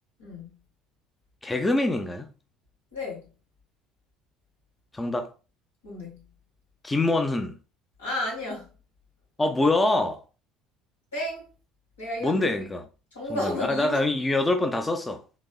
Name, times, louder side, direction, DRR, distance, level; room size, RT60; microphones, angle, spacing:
voice 1, 1.4-2.2 4.9-5.3 6.8-7.6 9.4-10.2 12.2-12.8 13.3-15.2, left 2 dB, 15° left, 0.5 m, -25 dB
voice 2, 2.9-3.3 5.8-6.2 8.0-8.7 11.1-11.4 12.0-12.5 13.1-14.0, left 1 dB, 85° left, 1.8 m, -32 dB
4.0 x 2.6 x 2.3 m
figure-of-eight pair, 60°, 0 cm